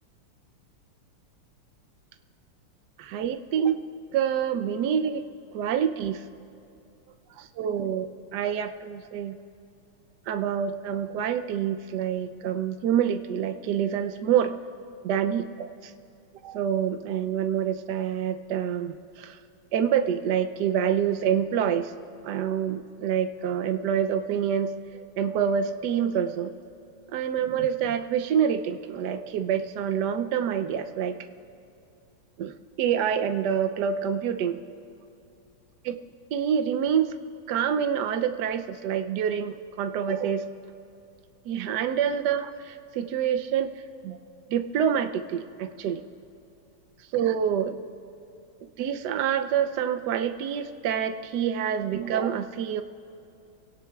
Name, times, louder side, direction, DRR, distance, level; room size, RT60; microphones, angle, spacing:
voice 1, 3.0-3.8 4.1-5.2 5.5-6.2 7.4-9.4 10.3-14.6 15.0-15.9 16.4-19.4 19.7-21.9 22.2-24.7 25.2-26.5 27.1-31.2 32.4-34.6 35.8-36.0 36.3-37.1 37.5-40.5 41.5-43.7 44.0-44.2 44.5-46.0 47.1-47.8 48.8-52.8, right 8 dB, 70° right, 8 dB, 1.0 m, -27 dB
23.5 x 17.5 x 2.4 m, 2.7 s
omnidirectional pair, 2.4 m